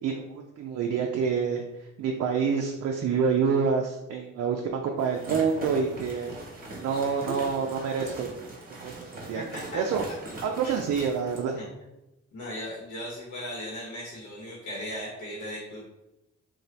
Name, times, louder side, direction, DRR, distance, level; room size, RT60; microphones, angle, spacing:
voice 1, 0.0-6.3 6.8-8.3 8.8-9.4 9.7-10.0 10.4-11.5, right 6 dB, 55° right, 2 dB, 0.4 m, -27 dB
sound 1, 5.0-11.5, right 1 dB, 30° right, 1.0 m, -41 dB
voice 2, 9.4-9.8 10.6-10.7 11.5-11.6 12.3-15.8, left 1 dB, 80° left, -5 dB, 1.0 m, -37 dB
2.7 x 2.3 x 3.1 m, 0.94 s
cardioid pair, 90°, 30 cm